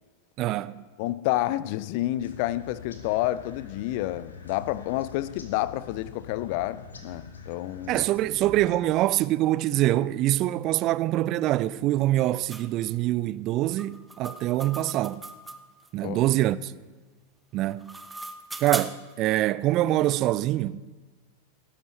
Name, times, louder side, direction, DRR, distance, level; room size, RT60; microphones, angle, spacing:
voice 1, 0.4-0.8 7.9-15.2 15.9-16.7 17.5-18.0 18.6-20.9, right 15 dB, 35° right, 0.3 m, -25 dB
voice 2, 1.0-8.0 16.0-16.2, left 15 dB, 45° left, 0.4 m, -29 dB
sound 1, 2.2-8.7, left 5 dB, 70° left, 1.3 m, -45 dB
sound 2, 12.5-12.7 13.8-15.9 17.6-19.2, right 2 dB, 10° right, 0.7 m, -38 dB
19.5 x 10.5 x 3.1 m
figure-of-eight pair, 90°, 0 cm